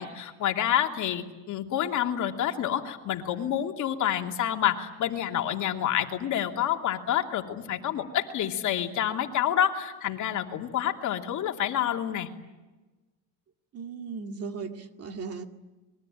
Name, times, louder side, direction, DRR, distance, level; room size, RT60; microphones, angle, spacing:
voice 1, 0.0-12.3, left 10 dB, 45° left, 2.8 m, -28 dB
voice 2, 13.7-15.5, right 5 dB, 35° right, 2.1 m, -37 dB
26.0 x 22.5 x 9.1 m
supercardioid pair, 125°, 40 cm